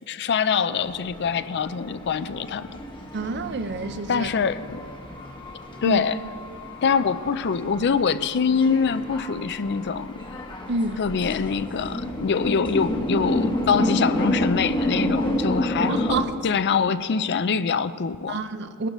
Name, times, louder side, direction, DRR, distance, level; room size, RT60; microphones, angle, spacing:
voice 1, 0.1-2.7 4.1-4.8 5.8-6.2 6.8-10.2 11.0-16.2 16.4-18.4, left 6 dB, 50° left, 14 dB, 0.4 m, -24 dB
sound 1, 0.7-16.2, left 1 dB, 20° left, 1.1 m, -30 dB
voice 2, 3.1-4.3 5.8-6.0 10.7-11.0 15.9-16.3 18.3-18.9, right 3 dB, 50° right, 11 dB, 0.6 m, -28 dB
21.0 x 11.5 x 3.1 m, 2.3 s
head